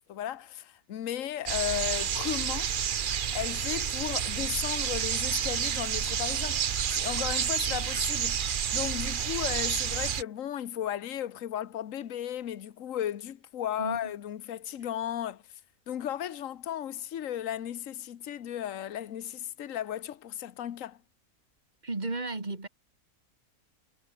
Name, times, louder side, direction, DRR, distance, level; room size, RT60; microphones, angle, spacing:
voice 1, 0.1-2.8 3.3-6.6 6.9-8.4 8.7-15.4 15.9-21.0, left 11 dB, 65° left, 1.3 m, -35 dB
sound 1, 1.5-10.2, right 8 dB, 50° right, 0.7 m, -30 dB
voice 2, 13.8-14.1 21.8-22.7, right 3 dB, 30° right, 2.8 m, -34 dB
omnidirectional pair, 1.6 m